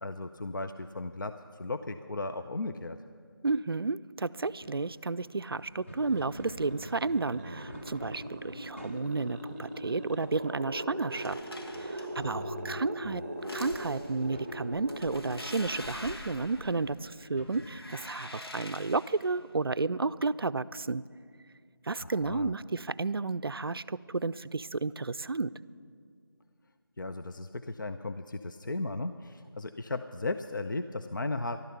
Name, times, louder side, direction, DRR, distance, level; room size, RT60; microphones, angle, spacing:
voice 1, 0.0-3.0 12.1-13.1 22.0-22.5 27.0-31.6, left 2 dB, 55° left, 9 dB, 0.5 m, -36 dB
voice 2, 3.4-11.4 11.8-13.2 13.5-21.0 21.9-25.5, right 3 dB, 75° right, 16 dB, 0.4 m, -32 dB
sound 1, 4.6-18.5, left 1 dB, 30° left, 1.1 m, -52 dB
sound 2, 5.9-17.0, right 1 dB, 25° right, 0.7 m, -41 dB
sound 3, 11.1-12.3 13.3-14.2 14.7-17.1 17.5-19.3, left 1 dB, 80° left, 1.6 m, -45 dB
14.0 x 12.0 x 6.8 m, 2.2 s
figure-of-eight pair, 170°, 13 cm